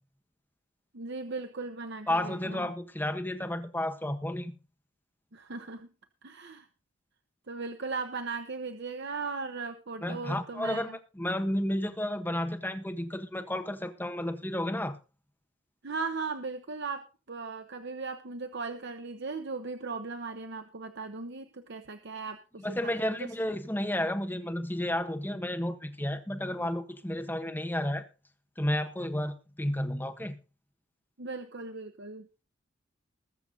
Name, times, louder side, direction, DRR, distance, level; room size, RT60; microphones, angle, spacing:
voice 1, 0.9-2.7 5.3-5.9 6.2-6.7 7.5-11.0 15.8-23.3 31.2-32.3, right 4 dB, 60° right, 1.0 m, -38 dB
voice 2, 2.1-4.6 10.0-10.9 11.1-15.0 22.6-28.1 28.6-30.4, left 1 dB, 10° left, 1.4 m, -32 dB
21.0 x 7.1 x 3.9 m
head